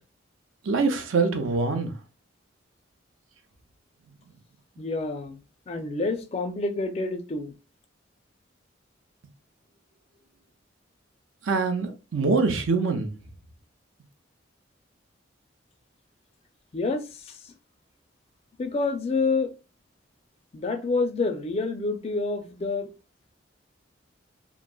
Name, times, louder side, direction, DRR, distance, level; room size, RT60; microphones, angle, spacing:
voice 1, 0.6-1.9 11.5-13.1, right 4 dB, 85° right, 0.6 m, -24 dB
voice 2, 4.8-5.4 5.7-7.5 16.7-17.0 18.6-19.5 20.5-22.9, left 3 dB, 30° left, 0.4 m, -27 dB
2.9 x 2.5 x 2.2 m
head